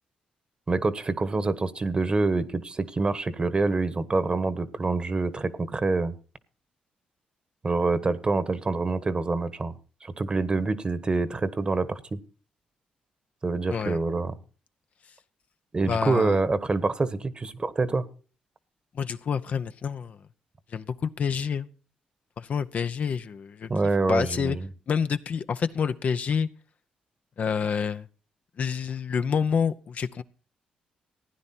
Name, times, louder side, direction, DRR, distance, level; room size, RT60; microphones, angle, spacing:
voice 1, 0.7-6.1 7.6-9.7 10.0-12.2 13.4-14.3 15.7-18.0 23.7-24.7, right 3 dB, 35° right, 14 dB, 1.2 m, -26 dB
voice 2, 15.9-16.4 18.9-20.2 20.7-21.7 22.4-23.7 24.1-24.6 24.9-26.5 27.4-28.1 28.6-30.2, left 6 dB, 55° left, 11 dB, 0.7 m, -28 dB
16.0 x 9.7 x 4.4 m, 0.39 s
cardioid pair, 70°, 3 cm